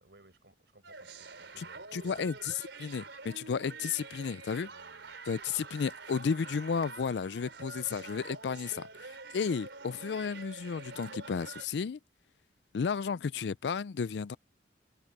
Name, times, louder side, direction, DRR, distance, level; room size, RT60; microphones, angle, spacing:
voice 1, 0.0-2.3 4.7-5.1, right 2 dB, 65° right, 6.1 m, -60 dB
sound 1, 0.8-11.7, right 4 dB, 90° right, 4.0 m, -47 dB
voice 2, 1.9-2.5 2.8-4.7 5.3-12.0 12.7-14.4, left 6 dB, 70° left, 0.4 m, -33 dB
open air
head